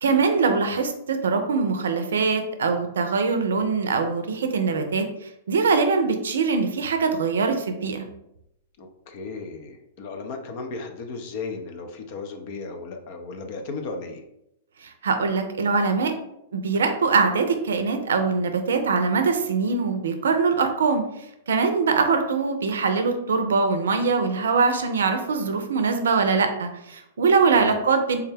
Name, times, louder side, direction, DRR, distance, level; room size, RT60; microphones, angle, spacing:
voice 1, 0.0-8.0 14.8-16.1 16.5-21.0 21.5-28.2, right 4 dB, 75° right, 6 dB, 0.4 m, -22 dB
voice 2, 8.8-14.2 21.9-22.1 27.5-27.8, left 4 dB, 55° left, 5 dB, 0.5 m, -35 dB
3.3 x 2.2 x 3.3 m, 0.81 s
hypercardioid pair, 115°, 0 cm